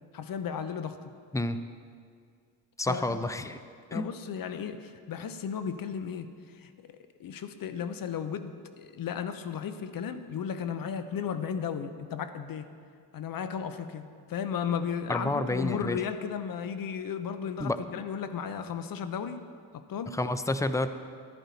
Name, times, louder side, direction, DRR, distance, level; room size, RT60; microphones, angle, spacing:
voice 1, 0.1-1.0 2.9-3.2 3.9-12.7 13.1-19.4 19.7-20.1, left 7 dB, 55° left, 10 dB, 0.8 m, -35 dB
voice 2, 2.8-3.6 3.9-4.1 15.1-16.0 17.6-17.8 20.1-20.9, left 2 dB, 10° left, 11 dB, 0.5 m, -29 dB
11.0 x 10.5 x 4.1 m, 2.1 s
supercardioid pair, 70°, 41 cm